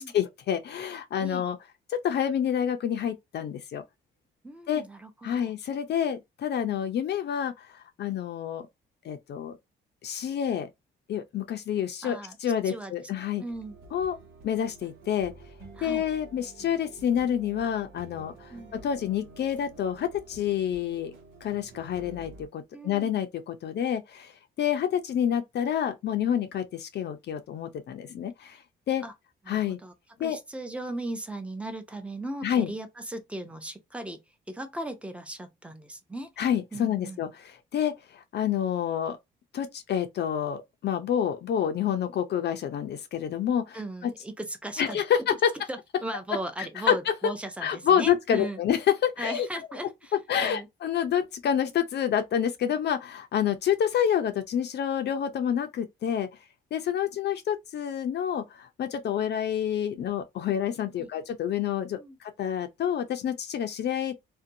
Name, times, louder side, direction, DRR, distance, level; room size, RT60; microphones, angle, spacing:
voice 1, 0.0-1.6 1.9-3.8 4.7-4.8 5.2-8.6 9.0-9.5 10.0-10.7 11.1-13.4 13.9-14.2 14.4-15.3 15.8-18.5 18.8-21.1 21.4-24.3 24.6-28.6 28.9-29.0 29.5-29.8 30.2-30.4 32.4-32.7 36.4-39.2 39.5-43.8 44.8-45.5 46.6-46.9 47.6-49.5 50.3-56.3 56.7-64.1, left 9 dB, 60° left, 0.5 m, -28 dB
voice 2, 4.4-5.5 12.0-12.4 12.6-13.1 13.4-13.8 15.8-16.0 18.5-18.7 22.7-23.2 29.0-29.1 29.5-29.9 30.2-34.2 34.5-36.3 36.7-37.2 43.7-45.0 45.7-48.6 49.2-50.1 50.4-50.7 61.0-61.1 61.9-62.2, right 1 dB, 5° right, 0.6 m, -37 dB
sound 1, 13.5-22.5, right 2 dB, 85° right, 0.8 m, -49 dB
2.6 x 2.2 x 2.6 m
cardioid pair, 90°, 20 cm